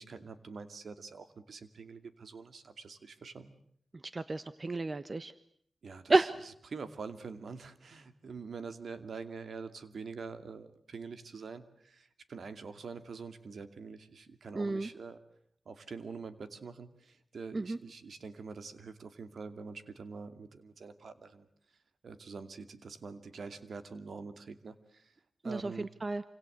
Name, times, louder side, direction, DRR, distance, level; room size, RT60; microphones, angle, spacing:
voice 1, 0.0-3.5 5.8-6.3 6.7-15.2 15.7-21.5 22.0-25.1 25.4-25.9, right 5 dB, 70° right, 10 dB, 2.5 m, -45 dB
voice 2, 4.1-5.3 6.1-6.3 14.5-14.9 17.5-17.8 25.4-26.2, right 3 dB, 40° right, 13 dB, 1.1 m, -31 dB
28.0 x 26.5 x 8.0 m, 0.67 s
cardioid pair, 70°, 0 cm